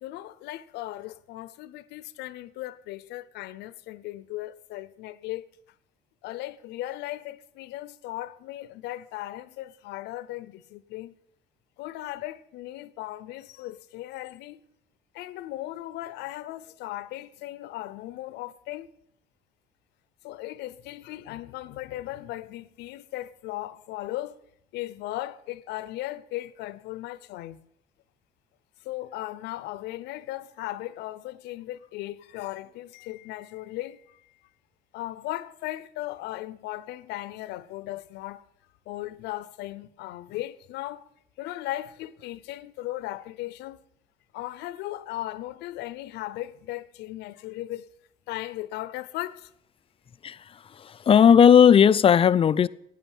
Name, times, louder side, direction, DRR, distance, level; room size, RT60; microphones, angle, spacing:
voice 1, 0.0-5.4 6.2-11.2 11.8-14.6 15.1-18.9 20.2-24.4 24.7-27.6 28.8-34.5 34.9-38.4 38.9-41.1 41.4-43.8 44.3-47.9 48.3-49.5, left 15 dB, 90° left, 0.8 m, -37 dB
voice 2, 50.7-52.7, left 8 dB, 35° left, 0.5 m, -16 dB
11.5 x 9.2 x 9.1 m
cardioid pair, 110°, 17 cm